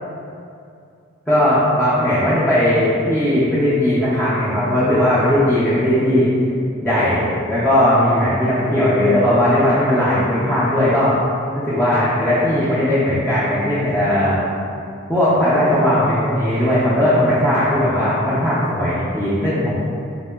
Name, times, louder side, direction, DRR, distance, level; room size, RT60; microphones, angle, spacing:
voice 1, 1.3-6.3 6.8-11.1 11.5-14.4 15.1-19.7, left 1 dB, 5° left, -12 dB, 0.5 m, -17 dB
3.4 x 2.8 x 2.3 m, 2.5 s
head